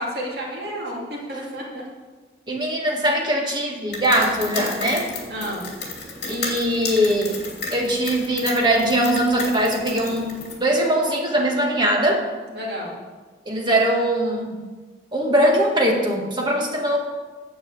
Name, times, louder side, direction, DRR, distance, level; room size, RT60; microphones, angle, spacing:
voice 1, 0.0-1.8 5.3-5.7 12.5-13.0, equal, 60° right, -3 dB, 2.9 m, -31 dB
voice 2, 2.5-5.0 6.3-7.4 7.7-12.2 13.4-14.6 15.1-17.0, right 1 dB, 25° right, 0 dB, 1.7 m, -21 dB
sound 1, 3.9-10.5, left 3 dB, 60° left, 2.7 m, -33 dB
9.6 x 7.7 x 7.3 m, 1.4 s
head